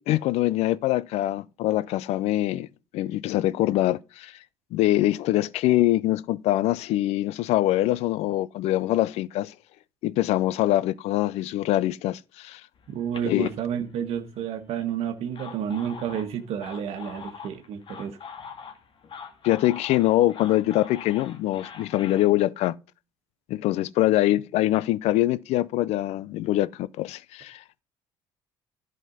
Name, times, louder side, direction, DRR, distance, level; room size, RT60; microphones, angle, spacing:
voice 1, 0.0-2.7 2.9-4.4 4.7-9.5 10.0-12.6 13.2-13.5 19.4-22.8 23.5-27.8, left 15 dB, 75° left, 0.6 m, -24 dB
sound 1, 12.7-14.4 15.1-22.3, left 6 dB, 50° left, 2.1 m, -43 dB
voice 2, 12.9-18.2, right 9 dB, 65° right, 1.6 m, -30 dB
11.0 x 5.4 x 5.5 m
supercardioid pair, 90°, 11 cm